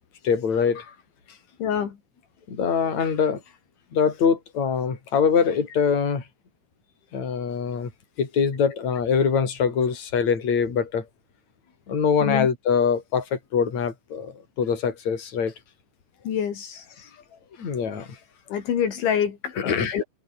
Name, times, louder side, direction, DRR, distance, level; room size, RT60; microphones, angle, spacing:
voice 1, 0.2-0.9 2.5-3.4 3.9-6.2 7.1-7.9 8.2-11.1 11.9-15.5 17.6-18.2 19.6-19.9, left 6 dB, 35° left, 5.5 m, -23 dB
voice 2, 1.6-2.0 12.2-12.5 16.3-16.9 18.5-20.0, left 8 dB, 70° left, 5.4 m, -26 dB
omnidirectional pair, 5.6 m